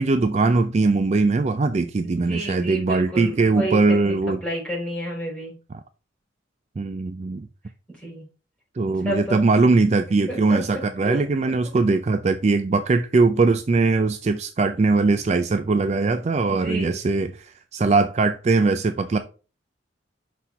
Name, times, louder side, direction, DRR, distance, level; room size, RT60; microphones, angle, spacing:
voice 1, 0.0-4.4 6.8-7.5 8.8-19.2, right 3 dB, 35° right, 0.3 m, -21 dB
voice 2, 2.0-5.5 8.0-8.2 8.9-9.4 10.3-10.6 11.0-11.5 16.5-17.0, right 1 dB, 5° left, 4.1 m, -31 dB
5.8 x 4.2 x 4.8 m
head